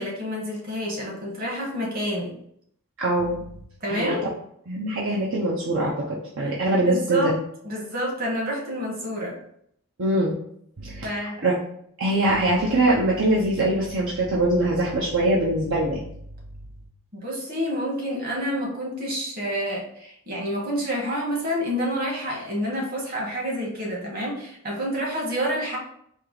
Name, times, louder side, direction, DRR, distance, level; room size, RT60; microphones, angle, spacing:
voice 1, 0.0-2.3 3.8-4.2 6.4-6.5 6.8-7.4 7.6-9.3 11.0-11.4 17.1-25.8, equal, 40° right, -2 dB, 1.4 m, -28 dB
voice 2, 3.0-3.5 3.9-4.2 4.7-7.3 10.0-10.3 10.8-11.1 11.4-11.5 12.0-16.1, right 1 dB, 60° right, -4 dB, 0.8 m, -23 dB
4.7 x 2.9 x 3.9 m, 0.69 s
head